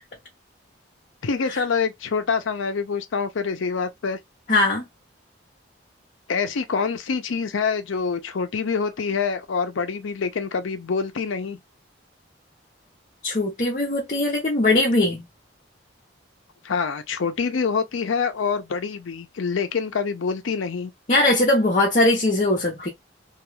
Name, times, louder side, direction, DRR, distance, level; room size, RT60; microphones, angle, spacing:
voice 1, 1.2-4.2 6.3-11.6 16.6-20.9 21.2-21.4, left 5 dB, 90° left, 0.5 m, -26 dB
voice 2, 4.5-4.8 13.2-15.2 21.1-22.9, left 2 dB, 40° left, 0.7 m, -20 dB
2.4 x 2.3 x 3.0 m
head